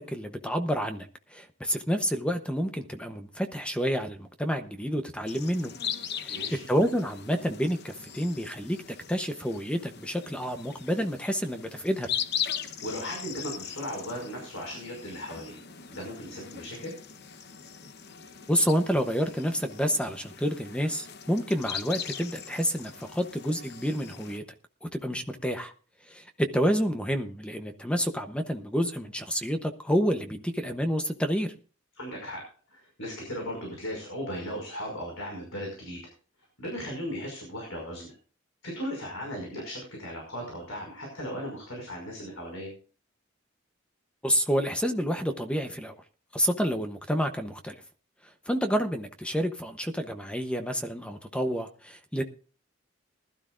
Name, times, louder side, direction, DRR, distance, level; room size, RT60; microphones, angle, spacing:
voice 1, 0.0-5.7 6.2-6.4 6.7-8.8 9.1-12.1 18.5-24.4 24.8-25.7 26.1-31.5 44.2-46.0 46.3-47.7 48.5-52.2, equal, 5° left, 7 dB, 0.7 m, -29 dB
sound 1, 5.3-24.4, left 8 dB, 50° left, 0.8 m, -39 dB
voice 2, 6.3-6.6 12.8-15.6 15.9-16.9 31.9-32.4 32.7-36.1 36.6-38.1 38.6-42.7, equal, 85° left, 0 dB, 5.5 m, -37 dB
20.0 x 12.5 x 2.5 m, 0.40 s
head